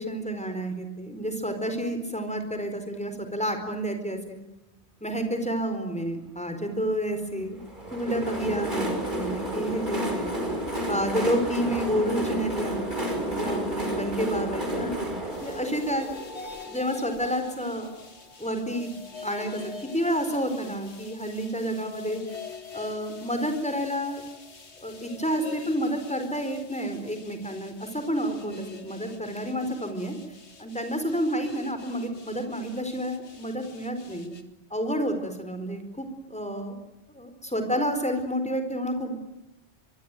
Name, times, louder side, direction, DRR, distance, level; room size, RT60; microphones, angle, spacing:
voice 1, 0.0-4.4 5.0-7.6 7.9-10.3 10.9-12.9 13.2-14.9 15.4-16.1 16.6-17.9 18.4-19.0 19.2-22.2 22.7-24.2 24.8-30.2 30.6-34.3 34.7-36.7 37.1-39.1, equal, 5° left, 7 dB, 4.5 m, -30 dB
Train, 7.6-17.3, right 1 dB, 45° right, 5.7 m, -31 dB
sound 1, 15.3-34.4, left 4 dB, 85° left, 2.5 m, -45 dB
25.0 x 23.5 x 9.2 m, 0.96 s
omnidirectional pair, 1.1 m